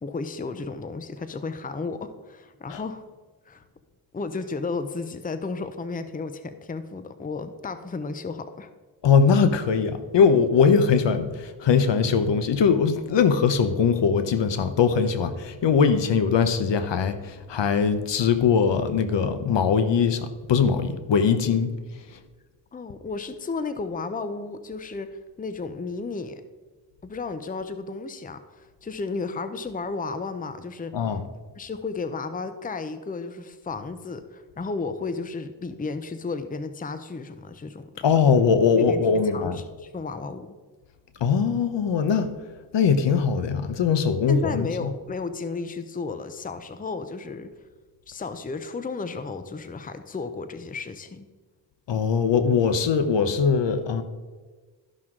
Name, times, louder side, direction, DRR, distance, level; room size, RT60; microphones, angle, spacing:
voice 1, 0.0-3.0 3.5-3.6 4.1-8.7 22.7-26.4 27.0-31.1 31.6-38.1 38.8-39.0 39.3-40.6 44.3-47.5 48.1-51.3, left 4 dB, 20° left, 10 dB, 0.6 m, -33 dB
voice 2, 9.0-21.7 22.1-22.2 30.9-31.2 38.0-39.6 41.2-42.3 42.7-44.9 51.9-54.0, left 6 dB, 65° left, 11 dB, 0.9 m, -21 dB
13.0 x 6.0 x 3.7 m, 1.4 s
cardioid pair, 70°, 46 cm